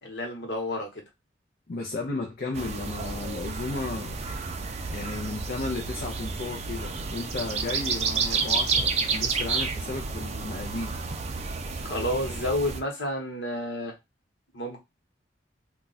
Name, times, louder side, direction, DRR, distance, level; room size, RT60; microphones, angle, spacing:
voice 1, 0.0-1.0 11.8-14.0 14.5-14.8, left 1 dB, 70° left, 1.1 m, -30 dB
voice 2, 1.7-4.2 4.9-11.0, left 3 dB, 55° left, 0.5 m, -34 dB
sound 1, 2.5-12.8, right 5 dB, 40° right, 0.4 m, -30 dB
2.3 x 2.2 x 3.9 m
head